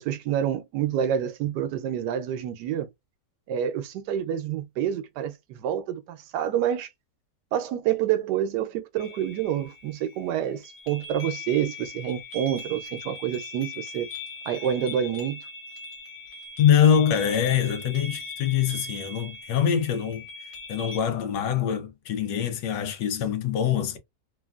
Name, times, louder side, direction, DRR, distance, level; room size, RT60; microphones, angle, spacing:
voice 1, 0.0-2.9 3.5-6.9 7.5-14.1 14.5-15.4, right 10 dB, 75° right, 1.2 m, -28 dB
sound 1, 9.0-21.0, left 3 dB, 55° left, 1.4 m, -40 dB
voice 2, 16.6-20.2 20.7-24.0, left 9 dB, 90° left, 1.3 m, -24 dB
3.3 x 2.3 x 2.3 m
omnidirectional pair, 1.8 m